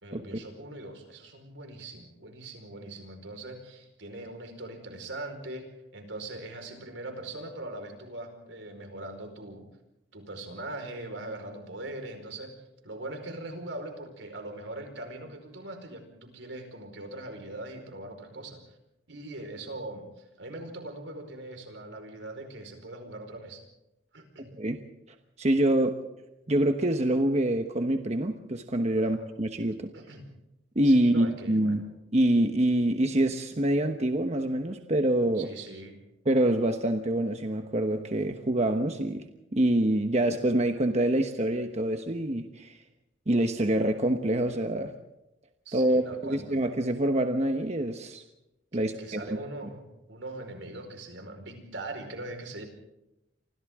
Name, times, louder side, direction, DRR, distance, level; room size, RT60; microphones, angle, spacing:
voice 1, 0.0-9.6 10.1-12.5 12.8-18.8 19.1-23.6 24.1-24.5 29.0-29.2 29.9-30.2 30.8-31.8 35.4-36.0 45.6-46.6 48.7-52.6, right 2 dB, 80° right, 5 dB, 4.8 m, -41 dB
voice 2, 24.4-24.8 25.4-26.0 26.5-29.9 30.7-31.8 32.1-35.5 36.2-39.2 39.5-42.8 43.3-44.9 45.7-48.2 48.7-49.2, right 1 dB, 35° right, 6 dB, 1.2 m, -26 dB
29.0 x 25.0 x 3.7 m, 0.91 s
head